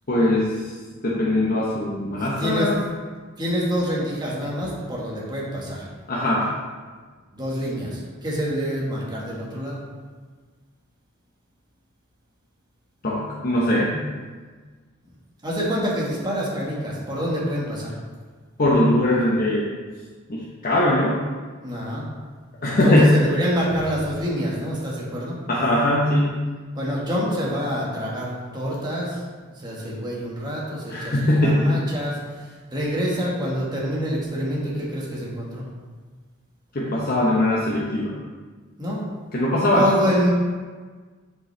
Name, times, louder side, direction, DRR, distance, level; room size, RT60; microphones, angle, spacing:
voice 1, 0.1-0.7 1.0-2.8 6.1-6.5 13.0-14.0 18.6-19.7 20.3-21.2 22.6-23.1 25.5-26.4 30.9-31.8 36.7-38.1 39.3-39.9, left 1 dB, 45° left, -6 dB, 1.0 m, -20 dB
voice 2, 2.2-2.7 3.4-5.8 7.3-9.8 15.4-17.9 21.6-22.1 22.7-25.4 26.7-29.2 29.6-35.6 38.8-39.0 39.7-40.3, equal, 20° right, -5 dB, 1.6 m, -26 dB
10.0 x 5.3 x 3.3 m, 1.5 s
head